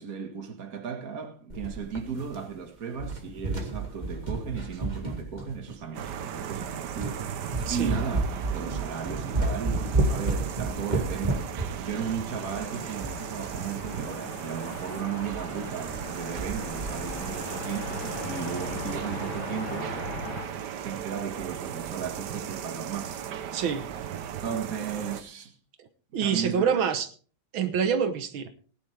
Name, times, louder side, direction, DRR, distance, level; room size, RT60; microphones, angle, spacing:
voice 1, 0.0-7.2 7.7-11.5 11.8-20.4 20.8-23.2 24.4-25.6 26.2-26.9, right 7 dB, 50° right, 2.1 m, -35 dB
sound 1, 1.5-2.6 2.9-5.9 6.5-6.6 7.0-7.2 7.5-13.6 13.9-14.0 14.2-14.3 14.7-14.9 15.3-15.4 15.7-16.1 16.4-17.3, right 2 dB, 20° right, 2.1 m, -31 dB
sound 2, 5.9-25.2, right 9 dB, 65° right, 1.4 m, -36 dB
voice 2, 7.7-8.0 23.5-23.9 26.1-27.1 27.5-28.5, right 7 dB, 85° right, 1.9 m, -26 dB
sound 3, 12.3-20.5, left 6 dB, 80° left, 2.2 m, -40 dB
18.5 x 11.0 x 3.4 m
omnidirectional pair, 2.1 m